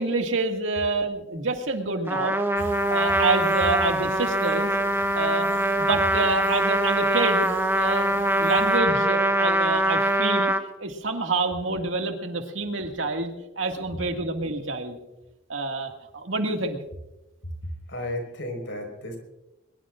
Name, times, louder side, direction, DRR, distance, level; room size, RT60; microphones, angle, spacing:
voice 1, 0.0-2.4 2.9-4.7 5.1-5.5 5.8-7.5 7.8-8.1 8.4-10.5 10.8-15.0 15.5-16.8, right 3 dB, 85° right, 4 dB, 2.1 m, -27 dB
Trumpet, 2.1-10.6, right 1 dB, 10° right, 1.1 m, -23 dB
sound 1, 2.6-8.8, right 3 dB, 70° right, 1.2 m, -42 dB
voice 2, 17.6-19.2, left 1 dB, 75° left, 4 dB, 5.0 m, -33 dB
22.0 x 21.5 x 2.5 m, 0.97 s
head